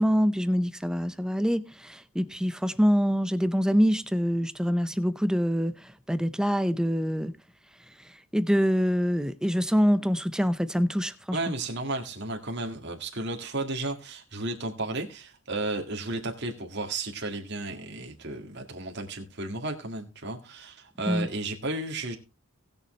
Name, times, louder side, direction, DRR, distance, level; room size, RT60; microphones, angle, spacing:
voice 1, 0.0-7.3 8.3-11.4 21.1-21.3, equal, 5° right, 0.6 m, -25 dB
voice 2, 11.3-22.2, right 2 dB, 55° right, 1.9 m, -33 dB
19.0 x 7.0 x 3.2 m
head